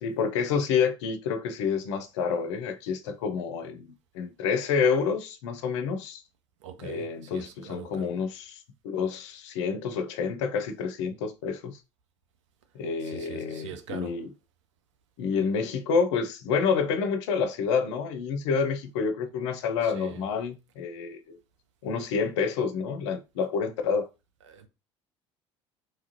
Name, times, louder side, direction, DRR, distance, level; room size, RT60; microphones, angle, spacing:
voice 1, 0.0-6.2 6.8-11.8 12.7-14.3 15.2-21.4 21.8-24.1, left 6 dB, 70° left, 0.5 m, -28 dB
voice 2, 6.6-8.1 13.0-14.2 19.8-20.3 24.4-24.7, right 8 dB, 75° right, 0.5 m, -43 dB
3.1 x 2.4 x 2.7 m
hypercardioid pair, 60°, 15 cm